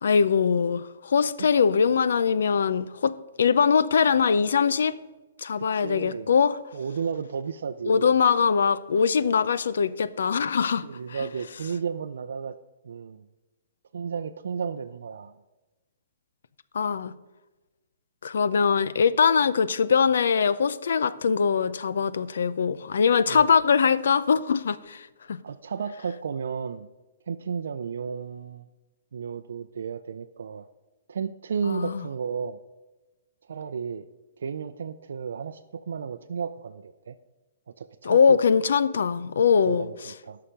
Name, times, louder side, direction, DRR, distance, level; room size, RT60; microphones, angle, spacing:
voice 1, 0.0-4.9 5.4-6.6 7.9-11.2 16.7-17.1 18.2-25.4 31.6-32.0 38.0-39.9, left 6 dB, 85° left, 0.6 m, -22 dB
voice 2, 5.6-6.3 6.7-8.1 10.8-12.6 12.8-13.2 13.9-15.4 23.3-23.5 25.4-26.9 27.3-28.7 29.1-30.7 31.1-32.6 33.5-34.0 34.4-37.1 37.8-38.4 39.6-40.4, right 6 dB, 90° right, 0.5 m, -33 dB
13.0 x 5.8 x 5.1 m
hypercardioid pair, 180°, 0 cm